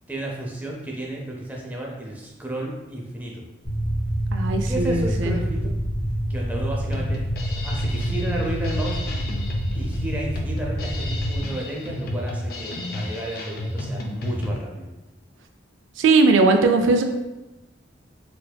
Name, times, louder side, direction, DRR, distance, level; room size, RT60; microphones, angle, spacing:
voice 1, 0.1-3.4 4.7-5.7 6.3-7.3 7.6-9.0 9.7-14.9, right 1 dB, 10° right, -2 dB, 0.5 m, -32 dB
sound 1, 3.6-11.4, equal, 30° left, 0.8 m, -27 dB
voice 2, 4.3-5.3 16.0-17.0, right 3 dB, 85° right, 6 dB, 0.3 m, -19 dB
Drum kit, 6.9-14.5, left 1 dB, 50° left, 0.4 m, -32 dB
4.3 x 2.6 x 2.2 m, 1.1 s
head